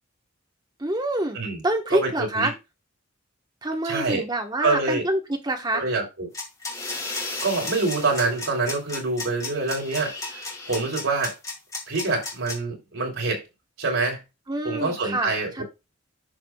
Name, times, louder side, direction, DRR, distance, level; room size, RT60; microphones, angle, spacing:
voice 1, 0.8-1.4 1.6-2.5 3.6-5.8 14.5-15.6, right 1 dB, 20° right, 1.2 m, -26 dB
voice 2, 1.9-2.5 3.8-4.3 4.6-5.0 5.7-6.3 7.4-11.3 11.9-13.4 13.8-14.2 14.6-15.6, right 3 dB, 75° right, 3.4 m, -26 dB
sound 1, 6.3-12.5, left 3 dB, 15° left, 1.8 m, -33 dB
11.0 x 6.0 x 2.3 m
head